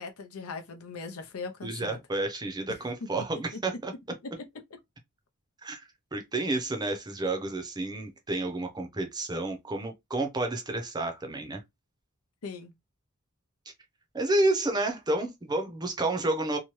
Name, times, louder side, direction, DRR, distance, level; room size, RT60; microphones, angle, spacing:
voice 1, 0.0-2.0 3.2-3.3 4.2-4.3 12.4-12.7, left 4 dB, 80° left, 0.6 m, -39 dB
voice 2, 1.6-3.9 5.6-5.8 6.1-11.6 14.1-16.6, right 2 dB, 20° right, 0.5 m, -30 dB
2.8 x 2.2 x 3.0 m
head